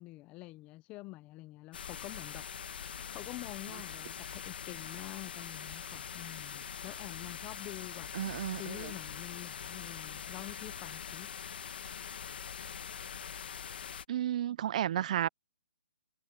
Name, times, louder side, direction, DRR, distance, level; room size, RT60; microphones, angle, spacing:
voice 1, 0.0-2.4 3.1-8.1 8.5-11.3, left 20 dB, 20° left, 0.6 m, -47 dB
sound 1, 1.7-14.0, left 8 dB, 60° left, 1.3 m, -43 dB
voice 2, 8.1-8.9 14.1-15.3, right 11 dB, 40° right, 0.4 m, -32 dB
hypercardioid pair, 160°, 6 cm